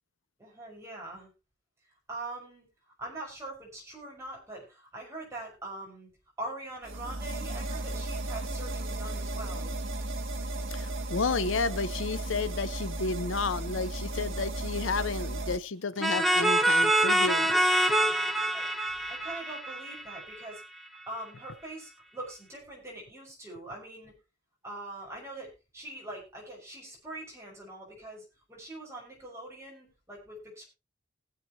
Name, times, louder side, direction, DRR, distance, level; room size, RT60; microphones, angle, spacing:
voice 1, 0.4-1.3 2.1-2.7 3.0-6.1 6.4-9.7 18.3-18.7 19.1-20.6 21.1-24.1 24.6-30.6, right 2 dB, 15° right, -3 dB, 6.1 m, -43 dB
sound 1, 6.8-15.6, right 2 dB, 85° right, 1.3 m, -35 dB
voice 2, 10.7-17.5, left 4 dB, 90° left, 15 dB, 0.7 m, -31 dB
sound 2, 16.0-20.6, right 1 dB, ahead, 1.0 m, -25 dB
20.0 x 7.7 x 3.0 m, 0.28 s
head